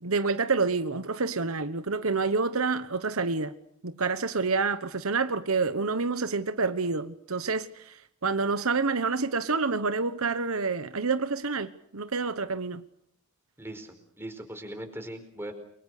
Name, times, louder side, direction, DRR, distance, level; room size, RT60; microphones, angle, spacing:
voice 1, 0.0-3.5 3.8-12.8, right 4 dB, 75° right, 1.2 m, -28 dB
voice 2, 13.6-15.5, right 1 dB, 10° right, 4.7 m, -40 dB
29.5 x 24.0 x 6.7 m
head